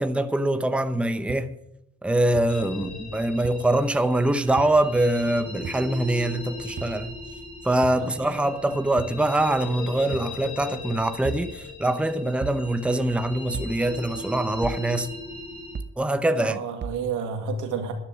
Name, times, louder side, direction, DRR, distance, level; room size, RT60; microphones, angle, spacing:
voice 1, 0.0-1.5 2.0-7.2 7.6-15.1 16.0-16.6, right 1 dB, 5° right, 0.8 m, -24 dB
sound 1, 1.3-1.4 2.4-2.5 3.4-3.5 4.6-4.7 5.6-5.8 6.8-7.0 7.8-8.0 9.0-9.2 10.1-10.3 11.2-11.5 12.4-12.6 13.5-13.8 14.6-14.9 15.8-16.0 16.8-17.0, right 5 dB, 35° right, 0.9 m, -34 dB
sound 2, 2.5-15.8, left 2 dB, 75° left, 5.2 m, -38 dB
voice 2, 7.9-8.7 16.4-17.9, right 5 dB, 90° right, 2.2 m, -32 dB
12.0 x 10.5 x 6.2 m
cardioid pair, 90°, 30 cm